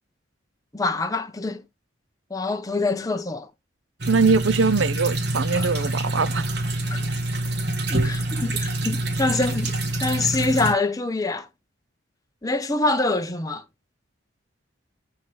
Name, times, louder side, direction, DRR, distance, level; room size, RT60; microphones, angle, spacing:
voice 1, 0.7-1.6 2.3-3.5 5.5-5.9 6.9-7.0 7.9-11.5 12.4-13.6, left 3 dB, 20° left, 1.0 m, -25 dB
sound 1, 4.0-10.7, right 1 dB, 60° right, 1.9 m, -26 dB
voice 2, 4.1-6.6, right 4 dB, 80° right, 0.7 m, -22 dB
10.0 x 5.5 x 3.4 m
head